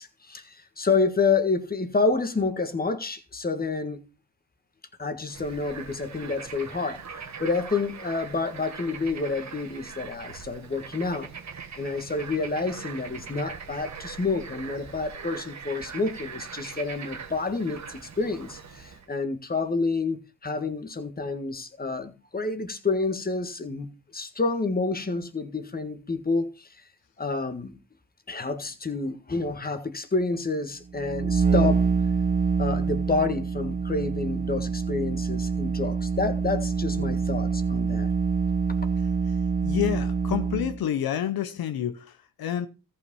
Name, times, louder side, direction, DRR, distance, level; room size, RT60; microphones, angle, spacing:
voice 1, 0.0-4.0 5.0-7.0 7.4-11.3 11.8-26.7 27.2-27.8 28.3-31.9 32.6-38.1, left 3 dB, 25° left, 1.8 m, -29 dB
Bird / Frog, 5.3-19.1, right 6 dB, 50° right, 1.6 m, -41 dB
sound 1, 30.9-40.8, right 5 dB, 25° right, 0.7 m, -26 dB
voice 2, 39.6-42.7, left 11 dB, 75° left, 1.0 m, -29 dB
14.0 x 5.9 x 5.4 m
cardioid pair, 80°, 36 cm